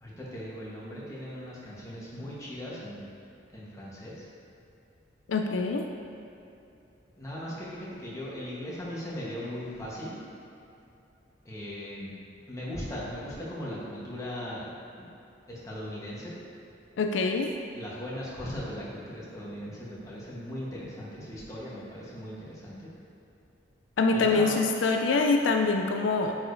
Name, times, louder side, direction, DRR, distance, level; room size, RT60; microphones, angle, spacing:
voice 1, 0.0-3.0 3.5-4.3 7.2-10.2 11.4-12.1 12.5-15.1 15.5-16.4 17.7-22.9 24.1-24.5, equal, 15° left, -7 dB, 1.2 m, -38 dB
voice 2, 5.3-5.9 17.0-17.5 24.0-26.4, left 3 dB, 80° left, 4 dB, 0.4 m, -25 dB
8.6 x 4.8 x 2.6 m, 2.7 s
head